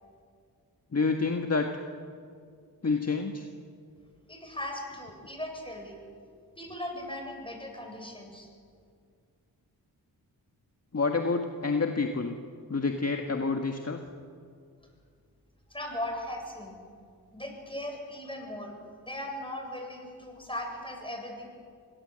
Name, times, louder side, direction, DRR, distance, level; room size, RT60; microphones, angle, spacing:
voice 1, 0.9-1.8 2.8-3.5 10.9-12.3 12.7-14.0, left 4 dB, 40° left, 4 dB, 1.7 m, -28 dB
voice 2, 4.3-6.0 6.6-8.5 15.7-16.8 17.3-18.7 19.0-21.5, left 1 dB, 15° left, 2 dB, 7.5 m, -38 dB
25.0 x 18.0 x 7.7 m, 2.2 s
cardioid pair, 50°, 39 cm